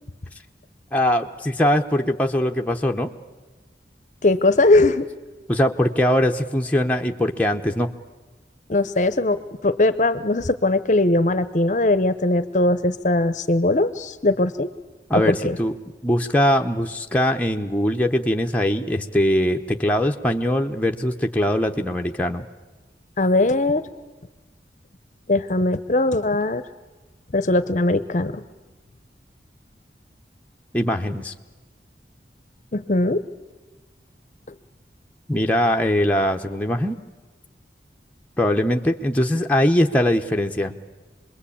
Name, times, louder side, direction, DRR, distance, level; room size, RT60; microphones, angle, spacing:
voice 1, 0.9-3.1 5.5-7.9 15.1-15.8 16.0-22.5 30.7-31.3 35.3-37.0 38.4-40.7, left 1 dB, 10° left, 2 dB, 0.8 m, -21 dB
voice 2, 4.2-5.1 8.7-14.7 15.2-15.6 23.2-23.9 25.3-26.6 27.3-28.4 32.7-33.2, left 2 dB, 45° left, 13 dB, 0.7 m, -20 dB
26.5 x 21.5 x 8.5 m, 1.2 s
head